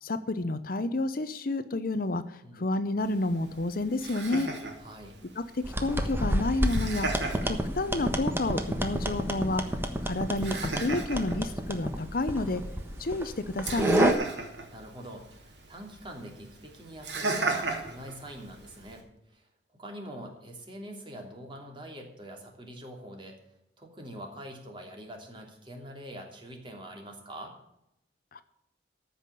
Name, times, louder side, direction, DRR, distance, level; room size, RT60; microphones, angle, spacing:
voice 1, 0.0-2.2 2.6-4.5 5.8-7.1 7.5-9.6 10.0-12.6 13.0-14.1 28.3-28.4, left 2 dB, 55° left, 12 dB, 0.8 m, -30 dB
voice 2, 2.4-2.9 4.8-5.2 14.7-19.5 19.8-23.4 23.8-27.6, equal, 30° right, 2 dB, 3.0 m, -44 dB
Laughter, 3.0-19.0, right 3 dB, 80° right, 2.9 m, -38 dB
sound 1, 5.6-14.1, right 1 dB, 15° right, 1.2 m, -30 dB
14.0 x 5.9 x 8.3 m, 0.82 s
head